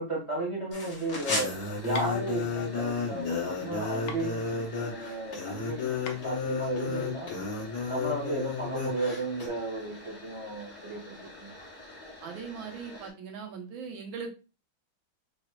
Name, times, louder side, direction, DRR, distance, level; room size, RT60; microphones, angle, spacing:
voice 1, 0.0-1.5 1.8-7.3 7.9-11.5, right 2 dB, 20° right, -3 dB, 1.1 m, -34 dB
sound 1, 0.7-9.5, left 4 dB, 50° left, 1.7 m, -33 dB
sound 2, 1.1-13.1, left 1 dB, 5° left, 2.0 m, -48 dB
sound 3, 1.9-7.4, left 4 dB, 70° left, 1.1 m, -46 dB
voice 2, 12.2-14.3, right 6 dB, 80° right, 3 dB, 1.5 m, -40 dB
4.1 x 3.6 x 2.3 m, 0.31 s
omnidirectional pair, 2.2 m